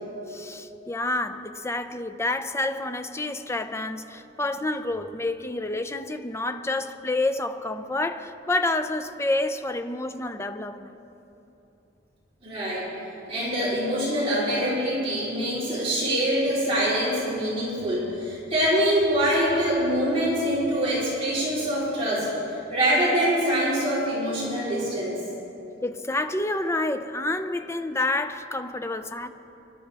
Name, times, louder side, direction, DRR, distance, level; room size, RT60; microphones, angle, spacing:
voice 1, 0.3-10.9 23.2-23.3 25.8-29.3, left 2 dB, 15° left, 0.5 m, -28 dB
voice 2, 12.4-12.9 13.3-25.2, equal, 30° right, 3.6 m, -24 dB
25.0 x 12.0 x 3.4 m
head